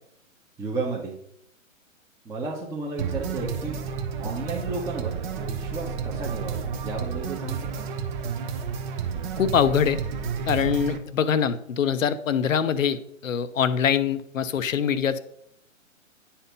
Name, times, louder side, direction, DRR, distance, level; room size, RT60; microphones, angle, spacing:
voice 1, 0.6-1.2 2.2-3.8 4.2-7.8, right 3 dB, 10° right, -4 dB, 1.1 m, -33 dB
sound 1, 3.0-11.0, right 6 dB, 35° right, 1.1 m, -31 dB
voice 2, 9.4-10.0 10.5-15.2, left 7 dB, 75° left, 12 dB, 0.8 m, -23 dB
9.9 x 4.4 x 5.3 m, 0.73 s
figure-of-eight pair, 125°, 40 cm